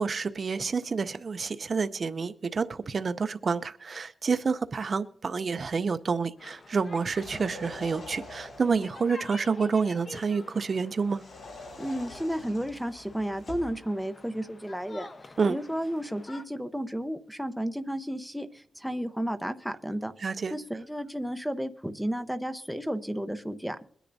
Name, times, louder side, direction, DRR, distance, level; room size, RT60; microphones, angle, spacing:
voice 1, 0.0-11.2 15.4-15.6 20.2-20.5, right 5 dB, 45° right, 12 dB, 0.4 m, -28 dB
sound 1, 6.4-16.4, left 3 dB, 40° left, 0.9 m, -49 dB
sound 2, 7.0-8.9 11.1-13.8, left 2 dB, 70° left, 5.0 m, -45 dB
voice 2, 11.8-20.1 20.5-23.9, equal, ahead, 8 dB, 0.7 m, -33 dB
22.5 x 10.0 x 2.6 m, 0.67 s
wide cardioid pair, 135°, 0 cm